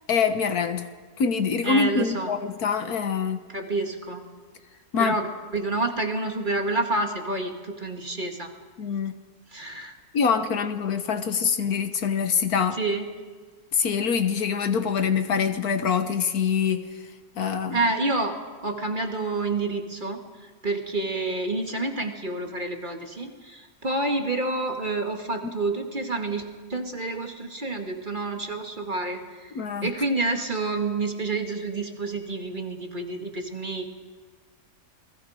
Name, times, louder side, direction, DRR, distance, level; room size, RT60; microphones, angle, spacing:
voice 1, 0.1-0.9 1.2-3.4 4.9-5.2 8.8-9.1 10.1-12.8 13.7-16.9 17.4-17.8 29.5-29.9, left 6 dB, 75° left, 8 dB, 1.6 m, -24 dB
voice 2, 1.6-2.3 3.5-4.3 5.0-8.5 9.5-10.0 12.7-13.1 17.7-18.4 18.6-29.5 29.8-33.9, right 2 dB, 30° right, 3 dB, 2.1 m, -28 dB
28.5 x 21.0 x 5.0 m, 1.5 s
omnidirectional pair, 1.6 m